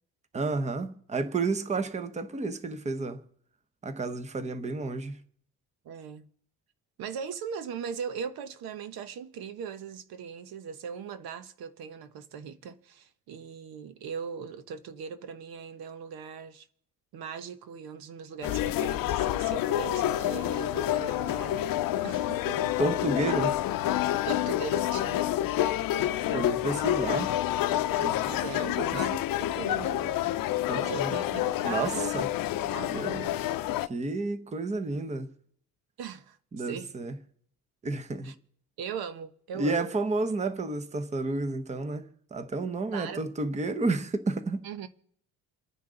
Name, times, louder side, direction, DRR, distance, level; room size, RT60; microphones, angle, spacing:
voice 1, 0.3-3.2 3.8-5.2 22.8-23.5 26.3-27.3 28.0-28.2 28.7-28.8 30.7-31.1 31.6-32.3 32.9-33.3 33.8-35.3 36.5-37.1 37.8-38.3 39.6-44.7, right 3 dB, 20° right, 0.9 m, -31 dB
voice 2, 5.8-6.3 7.0-16.7 17.1-21.7 22.0-22.8 23.2-23.3 24.3-25.3 28.0-30.2 30.7-32.2 32.5-33.4 36.0-36.9 38.2-38.3 38.8-39.9 42.9-43.3 44.6-44.9, right 7 dB, 90° right, 1.1 m, -39 dB
sound 1, 18.4-33.9, left 13 dB, 70° left, 0.6 m, -28 dB
28.0 x 9.8 x 3.9 m
cardioid pair, 175°, 36 cm